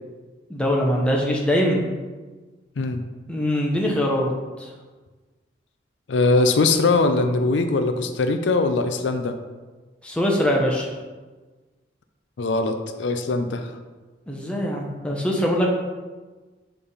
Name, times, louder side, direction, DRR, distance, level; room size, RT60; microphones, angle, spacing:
voice 1, 0.5-1.8 3.3-4.3 4.6-4.7 10.0-10.9 14.3-15.7, equal, 5° left, -2 dB, 0.9 m, -22 dB
voice 2, 6.1-9.4 12.4-13.7, left 3 dB, 75° left, 8 dB, 0.5 m, -21 dB
6.8 x 3.4 x 5.5 m, 1.3 s
head